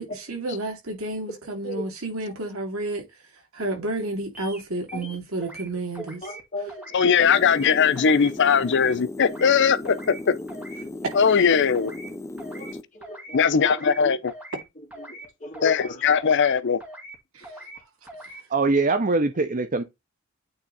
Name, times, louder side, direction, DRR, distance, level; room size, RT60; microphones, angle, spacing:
voice 1, 0.0-3.0 3.5-6.2 17.3-17.5, right 2 dB, 80° right, 2.7 m, -31 dB
sound 1, 4.3-4.6 4.9-5.7 5.9-6.4 6.7-7.0 7.3-7.7 7.9-8.3 8.6-8.9 9.2-9.6 9.8-10.2 10.5-10.8 11.1-11.5 11.7-12.1 12.4-12.7 13.0-13.4 13.6-14.0 14.3-14.6 14.9-15.3 15.5-15.9 16.2-16.5 16.8-17.2 17.4-17.8 18.1-18.4, right 1 dB, 5° right, 2.0 m, -42 dB
voice 2, 4.9-5.5 6.0-7.2 12.5-14.2 14.8-16.0, equal, 35° left, 2.3 m, -37 dB
voice 3, 6.9-10.3 11.1-11.9 13.3-14.3 15.6-16.8, left 6 dB, 60° left, 0.6 m, -20 dB
sound 2, 7.2-12.8, left 1 dB, 15° left, 0.7 m, -36 dB
voice 4, 18.5-19.8, right 3 dB, 40° right, 0.7 m, -22 dB
8.8 x 3.4 x 4.0 m
head